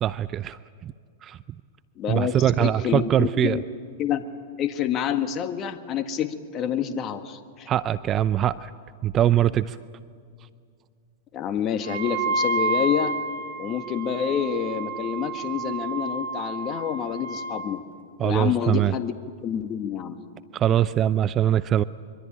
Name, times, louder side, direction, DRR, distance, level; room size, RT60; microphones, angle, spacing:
voice 1, 0.0-0.9 1.2-1.4 2.1-3.6 7.7-8.7 9.0-9.8 18.2-18.9 20.5-21.8, right 11 dB, 30° right, 15 dB, 0.6 m, -22 dB
voice 2, 2.0-3.6 4.0-4.2 4.6-7.7 11.3-13.2 13.6-17.8 18.2-20.2, left 8 dB, 35° left, 8 dB, 1.7 m, -28 dB
Wind instrument woodwind instrument, 11.8-17.7, right 3 dB, 70° right, 3.1 m, -30 dB
24.5 x 24.0 x 8.7 m, 2.1 s
hypercardioid pair, 105°, 0 cm